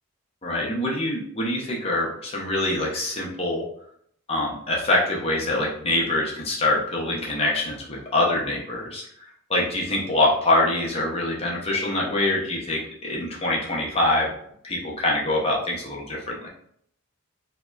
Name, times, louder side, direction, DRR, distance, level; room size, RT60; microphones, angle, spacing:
voice 1, 0.4-3.6 4.3-9.1 9.5-14.3 14.6-16.5, left 2 dB, 25° left, -3 dB, 0.5 m, -24 dB
2.7 x 2.1 x 2.3 m, 0.67 s
head